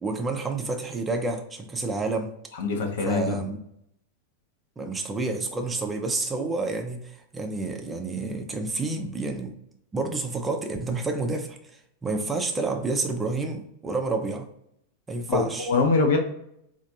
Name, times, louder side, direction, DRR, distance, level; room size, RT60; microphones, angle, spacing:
voice 1, 0.0-2.3 3.0-3.6 4.8-9.5 9.9-11.6 12.0-14.4 15.1-15.7, right 3 dB, 15° right, 4 dB, 0.5 m, -29 dB
voice 2, 2.6-3.4 15.3-16.2, left 4 dB, 60° left, 4 dB, 0.6 m, -23 dB
4.0 x 2.5 x 2.6 m, 0.75 s
figure-of-eight pair, 90°, 0 cm